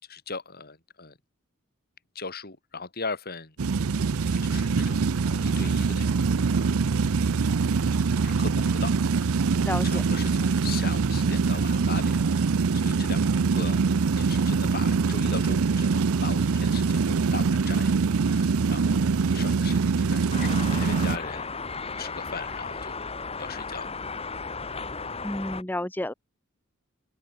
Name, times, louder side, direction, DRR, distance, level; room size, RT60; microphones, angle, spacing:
voice 1, 0.0-1.2 2.1-3.6 4.1-6.3 6.5-6.8 7.1-7.2 8.0-13.8 14.2-18.0 18.2-22.9 23.4-23.9, left 4 dB, 45° left, 5.1 m, -39 dB
sound 1, 3.6-21.2, right 5 dB, 75° right, 0.6 m, -24 dB
voice 2, 9.6-10.0 25.2-26.1, left 1 dB, 10° left, 0.9 m, -30 dB
sound 2, 20.3-25.6, left 4 dB, 25° left, 2.3 m, -35 dB
open air
head